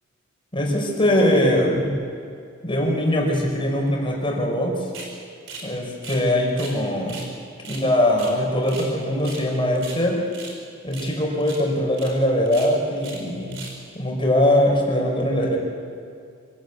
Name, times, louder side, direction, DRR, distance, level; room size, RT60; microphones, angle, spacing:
voice 1, 0.5-1.9 2.6-4.8 5.6-7.2 7.7-10.2 10.8-13.6 14.0-15.6, left 1 dB, 25° left, -1 dB, 5.2 m, -21 dB
sound 1, 4.9-5.1 5.5-5.7 5.9-6.8 7.1-7.3 7.6-8.9 9.2-9.5 9.7-10.6 10.9-11.2 11.4-11.6 11.9-12.1 12.5-13.2 13.5-13.8, right 3 dB, 70° right, 4.8 m, -38 dB
26.0 x 17.5 x 8.3 m, 2.4 s
head